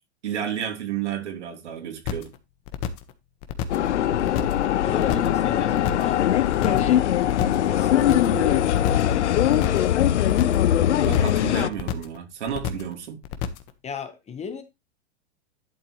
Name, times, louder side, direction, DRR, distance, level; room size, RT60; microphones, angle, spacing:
voice 1, 0.2-2.3 11.1-13.2, right 9 dB, 80° right, 3.4 m, -31 dB
sound 1, 2.1-2.4 2.7-3.1 3.4-3.9 4.2-4.6 4.9-5.4 5.7-6.1 6.4-6.9 7.2-7.7 8.0-8.4 8.7-9.1 9.4-9.9 10.2-10.7 11.0-11.4 11.7-12.2 12.5-12.9 13.2-13.7, left 9 dB, 40° left, 1.4 m, -30 dB
sound 2, 3.7-11.7, left 11 dB, 85° left, 0.7 m, -21 dB
voice 2, 4.8-6.2 6.6-9.5 13.8-14.6, left 5 dB, 20° left, 1.4 m, -34 dB
11.5 x 7.6 x 3.2 m
hypercardioid pair, 120°, 34 cm